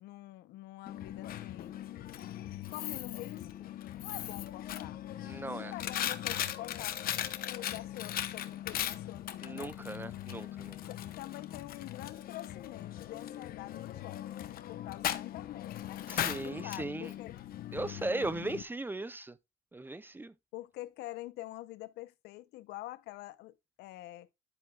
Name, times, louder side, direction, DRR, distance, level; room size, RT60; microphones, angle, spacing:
voice 1, 0.0-3.7 4.0-5.0 5.4-7.0 7.5-9.8 10.7-14.4 14.7-16.1 16.4-17.4 20.5-24.3, left 17 dB, 85° left, 0.7 m, -46 dB
Coin (dropping), 0.9-18.6, left 12 dB, 60° left, 0.9 m, -39 dB
voice 2, 5.2-5.7 9.4-10.8 16.1-17.1 17.7-19.4 19.7-20.3, right 2 dB, 10° right, 0.5 m, -38 dB
10.5 x 7.6 x 2.3 m
cardioid pair, 110°, 17 cm